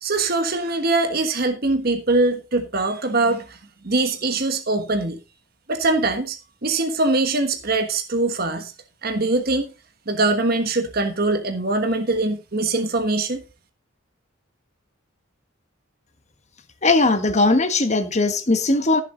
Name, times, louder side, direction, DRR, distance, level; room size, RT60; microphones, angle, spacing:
voice 1, 0.0-3.6 3.8-5.2 5.7-8.7 9.0-9.7 10.1-13.4, right 2 dB, 50° right, 1.3 m, -22 dB
voice 2, 16.8-19.0, left 2 dB, 35° left, 1.4 m, -19 dB
14.0 x 7.3 x 3.9 m
head